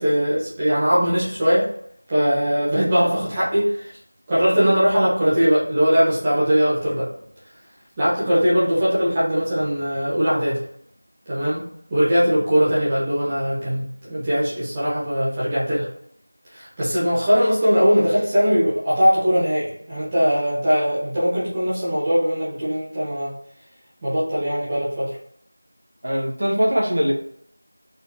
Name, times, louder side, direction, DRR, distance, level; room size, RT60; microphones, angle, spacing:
voice 1, 0.0-1.7 2.1-3.9 4.3-7.1 8.0-10.6 11.3-11.6 11.9-15.9 16.5-23.3 24.0-25.1, equal, 10° right, -11 dB, 0.8 m, -20 dB
voice 2, 26.0-27.1, equal, 50° right, -1 dB, 1.0 m, -21 dB
4.1 x 2.7 x 4.5 m, 0.67 s
figure-of-eight pair, 175°, 0 cm